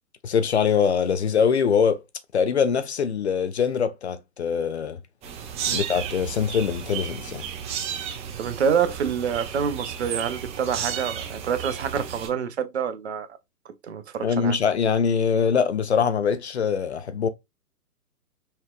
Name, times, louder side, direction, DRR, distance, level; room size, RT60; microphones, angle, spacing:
voice 1, 0.2-2.0 2.3-5.0 5.7-7.4 14.2-17.3, left 6 dB, 45° left, 0.5 m, -23 dB
sound 1, 5.2-12.3, right 8 dB, 15° right, 1.0 m, -33 dB
voice 2, 8.4-13.3 13.8-14.6, right 7 dB, 45° right, 0.7 m, -27 dB
5.7 x 3.1 x 2.3 m
figure-of-eight pair, 125°, 49 cm